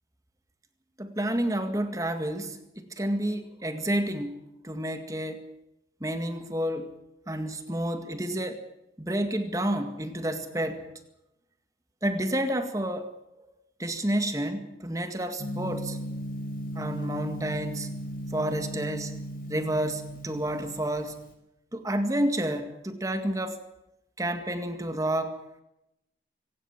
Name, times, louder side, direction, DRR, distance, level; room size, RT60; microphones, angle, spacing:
voice 1, 1.0-4.4 4.6-5.5 6.0-6.9 7.3-8.6 9.0-10.8 12.0-13.1 13.4-13.5 13.8-16.0 16.8-17.9 18.3-19.1 19.5-21.2 21.7-23.6 24.2-25.4, right 1 dB, 20° right, 8 dB, 1.9 m, -30 dB
Gong, 15.4-21.3, equal, 50° left, 5.0 m, -36 dB
25.0 x 17.5 x 7.3 m, 0.87 s
head